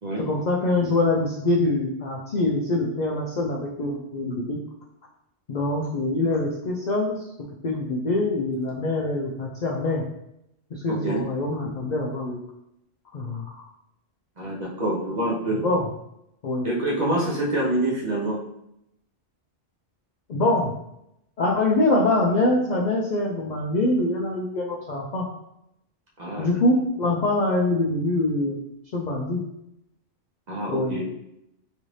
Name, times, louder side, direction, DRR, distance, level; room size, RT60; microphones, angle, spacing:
voice 1, 0.2-4.6 5.5-10.0 10.7-12.4 13.1-13.6 15.6-15.8 16.4-16.7 20.3-20.7 21.4-25.2 26.4-28.6 28.9-29.4 30.7-30.9, left 2 dB, 60° left, -2 dB, 0.4 m, -24 dB
voice 2, 14.4-15.6 16.6-18.4 26.2-26.5 30.5-31.0, right 1 dB, 40° right, -5 dB, 0.8 m, -26 dB
3.2 x 2.6 x 3.1 m, 0.80 s
omnidirectional pair, 1.2 m